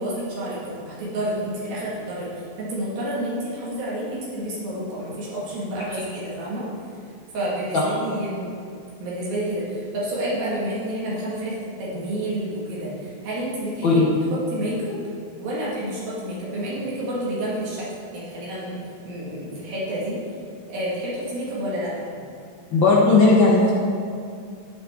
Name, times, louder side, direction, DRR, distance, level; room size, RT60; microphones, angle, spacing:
voice 1, 0.0-2.3 2.6-6.7 7.3-8.4 9.0-14.0 14.3-14.9 15.4-17.9 18.1-18.8 19.0-20.2 20.7-22.1, right 1 dB, 80° right, -7 dB, 3.9 m, -29 dB
voice 2, 22.7-23.7, left 3 dB, 80° left, -5 dB, 1.1 m, -16 dB
14.0 x 9.0 x 3.7 m, 2.3 s
omnidirectional pair, 4.1 m